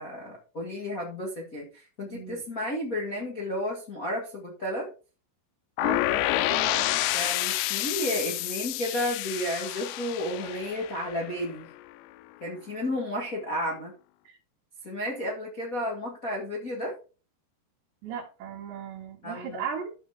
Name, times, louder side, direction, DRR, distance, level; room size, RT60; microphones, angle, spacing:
voice 1, 0.0-4.9 7.1-11.7 12.4-13.9 14.8-16.9 19.2-19.6, left 1 dB, 55° left, -2 dB, 0.9 m, -32 dB
voice 2, 2.1-2.4 5.8-7.0 14.3-14.4 18.0-20.0, right 7 dB, 75° right, -6 dB, 4.2 m, -37 dB
sound 1, 5.8-11.7, left 16 dB, 90° left, 2.8 m, -29 dB
14.0 x 4.9 x 3.5 m, 0.34 s
omnidirectional pair, 5.0 m